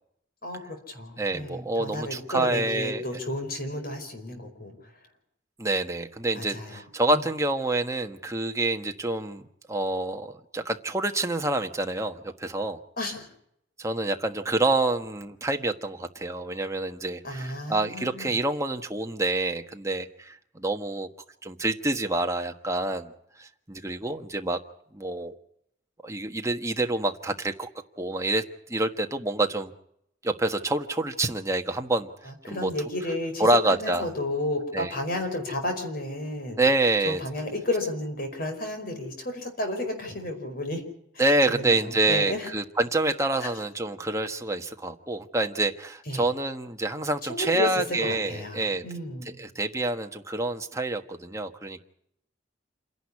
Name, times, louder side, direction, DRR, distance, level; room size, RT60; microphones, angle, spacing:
voice 1, 0.4-4.8 6.3-7.2 13.0-13.3 17.2-18.3 32.2-36.6 37.0-40.8 41.1-42.5 43.4-43.5 46.1-46.3 47.2-49.4, left 1 dB, 55° left, 5 dB, 5.0 m, -32 dB
voice 2, 1.2-3.0 5.6-12.8 13.8-21.1 21.4-23.1 23.4-24.6 24.9-25.3 26.0-27.7 28.0-28.4 28.7-29.7 30.2-32.1 32.5-32.7 33.4-34.0 34.7-34.9 36.6-37.2 41.2-48.8 49.4-51.8, right 2 dB, 15° right, 5 dB, 1.4 m, -27 dB
27.5 x 11.0 x 9.8 m, 0.74 s
head